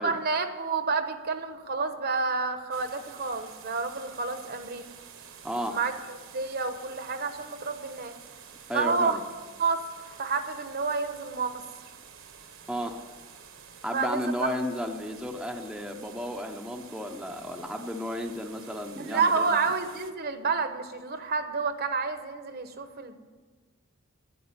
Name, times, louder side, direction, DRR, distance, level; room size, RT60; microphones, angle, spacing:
voice 1, 0.0-4.9 5.7-8.1 8.7-9.2 9.6-11.6 13.9-14.5 19.0-23.2, right 4 dB, 45° right, 8 dB, 1.0 m, -29 dB
sound 1, 2.7-20.1, right 7 dB, 60° right, 1.2 m, -49 dB
voice 2, 5.4-5.8 8.7-9.2 12.7-13.0 13.8-19.6, equal, 5° right, 2 dB, 0.7 m, -33 dB
11.0 x 9.1 x 9.6 m, 1.4 s
head